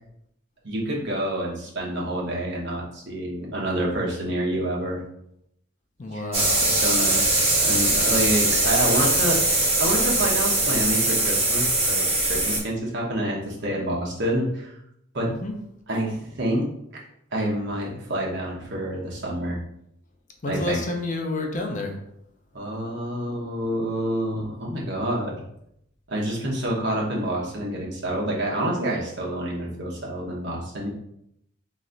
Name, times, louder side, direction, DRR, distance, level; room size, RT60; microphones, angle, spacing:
voice 1, 0.6-5.0 6.1-14.8 15.1-15.3 15.9-16.7 17.3-19.6 20.5-20.8 22.5-25.4 26.1-30.9, right 1 dB, 55° right, -3 dB, 1.1 m, -28 dB
voice 2, 6.0-6.7 15.2-15.5 20.4-22.0, left 2 dB, 35° left, 2 dB, 0.6 m, -29 dB
sound 1, 6.3-12.6, right 2 dB, 30° right, 1.2 m, -21 dB
3.3 x 3.1 x 3.9 m, 0.75 s
head